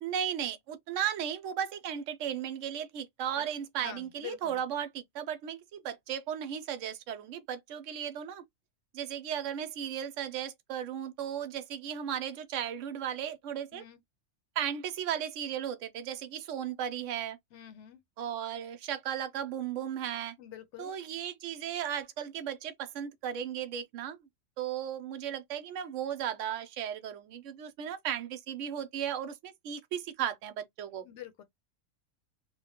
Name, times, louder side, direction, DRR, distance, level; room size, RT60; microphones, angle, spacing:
voice 1, 0.0-8.4 8.9-13.8 14.6-17.4 18.2-20.3 20.8-24.2 24.6-31.1, right 9 dB, 75° right, 0.9 m, -35 dB
voice 2, 3.8-4.6 13.7-14.0 17.5-18.0 20.4-20.9 31.0-31.4, left 12 dB, 65° left, 0.9 m, -46 dB
3.0 x 2.2 x 2.8 m
omnidirectional pair, 1.3 m